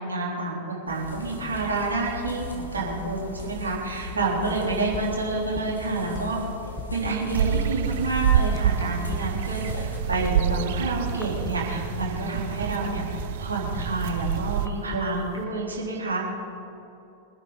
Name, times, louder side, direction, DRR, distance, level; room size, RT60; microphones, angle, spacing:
voice 1, 0.0-6.4 6.9-13.0 13.4-16.2, right 2 dB, 75° right, -4 dB, 3.9 m, -28 dB
sound 1, 0.9-10.0, left 1 dB, 75° left, 2.4 m, -38 dB
sound 2, 4.5-15.5, left 2 dB, 15° left, 1.4 m, -40 dB
sound 3, 7.3-14.7, right 10 dB, 55° right, 0.5 m, -27 dB
25.0 x 9.8 x 4.1 m, 2.8 s
figure-of-eight pair, 90°, 0 cm